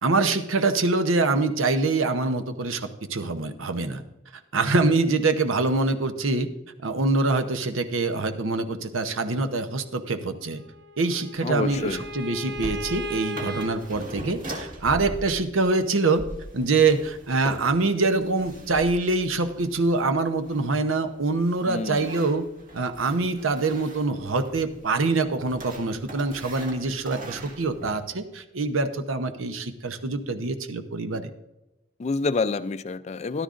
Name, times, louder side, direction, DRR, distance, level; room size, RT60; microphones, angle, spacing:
voice 1, 0.0-4.0 4.5-6.5 6.8-10.6 11.0-16.2 16.5-22.5 22.7-31.3, right 3 dB, 90° right, 9 dB, 0.8 m, -25 dB
Bowed string instrument, 10.6-13.7, left 1 dB, 65° right, 1.2 m, -36 dB
voice 2, 11.4-12.0 21.7-22.1 32.0-33.4, left 3 dB, 35° left, 13 dB, 0.3 m, -27 dB
sound 1, 11.4-28.1, equal, 45° right, 1.7 m, -41 dB
14.0 x 12.0 x 2.5 m, 0.97 s
head